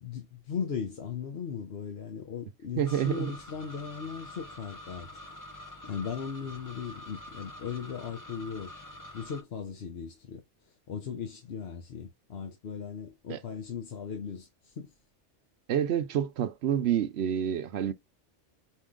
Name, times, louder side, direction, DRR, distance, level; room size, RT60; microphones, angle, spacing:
voice 1, 0.0-5.1 5.9-8.7 9.1-10.4 10.9-14.9, left 6 dB, 60° left, 1.0 m, -38 dB
sound 1, 2.8-9.4, left 1 dB, 20° left, 0.7 m, -46 dB
voice 2, 2.8-3.3 13.3-13.4 15.7-17.9, right 9 dB, 65° right, 0.9 m, -28 dB
4.6 x 2.7 x 3.7 m
omnidirectional pair, 1.3 m